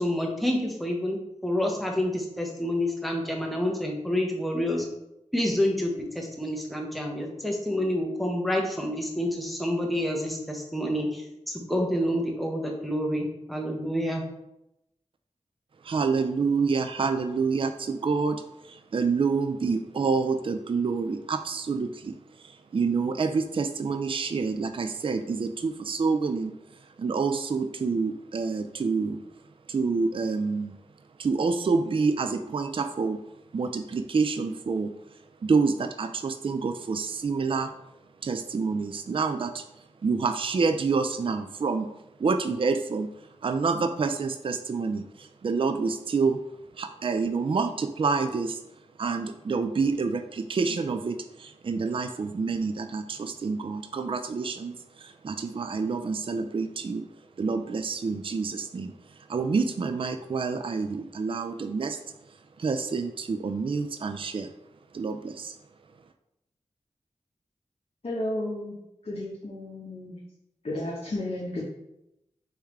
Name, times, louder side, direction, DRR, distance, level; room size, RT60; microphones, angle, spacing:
voice 1, 0.0-4.8 5.3-14.2, left 1 dB, ahead, 0 dB, 1.1 m, -28 dB
voice 2, 15.8-26.5 27.0-29.2 29.7-30.8 31.2-33.2 33.5-34.9 35.4-37.7 38.2-41.9 42.2-43.1 43.4-46.4 46.7-48.6 49.0-57.0 57.4-62.0 62.3-64.5 64.9-65.6, right 4 dB, 45° right, 7 dB, 0.3 m, -28 dB
voice 3, 68.0-68.7 69.1-70.2 70.6-71.6, left 1 dB, 55° left, -5 dB, 1.1 m, -32 dB
4.6 x 3.5 x 3.2 m, 0.85 s
cardioid pair, 45°, 12 cm